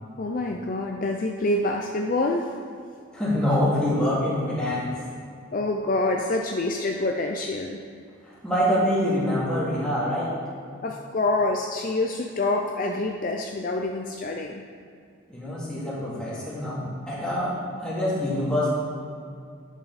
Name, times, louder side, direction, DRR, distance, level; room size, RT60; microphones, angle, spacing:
voice 1, 0.2-2.5 5.5-7.8 10.8-14.6, left 2 dB, 40° left, 2 dB, 0.5 m, -26 dB
voice 2, 3.1-4.9 8.4-10.3 15.3-17.5 17.8-18.7, left 1 dB, 5° left, -9 dB, 2.5 m, -25 dB
10.5 x 7.3 x 4.1 m, 2.3 s
head